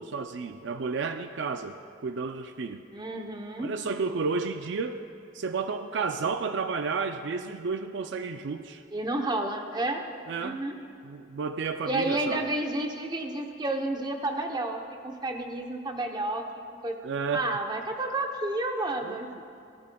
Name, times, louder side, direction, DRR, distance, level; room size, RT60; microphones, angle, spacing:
voice 1, 0.0-2.9 3.6-5.0 5.3-8.8 10.3-10.6 11.0-12.5 17.0-17.5 19.0-19.4, right 4 dB, 65° right, 8 dB, 0.4 m, -32 dB
voice 2, 2.9-3.7 8.9-10.0 10.4-10.7 11.9-16.4 16.8-16.9 17.3-19.4, right 2 dB, 20° right, 3 dB, 0.8 m, -30 dB
16.0 x 12.0 x 2.3 m, 2.6 s
head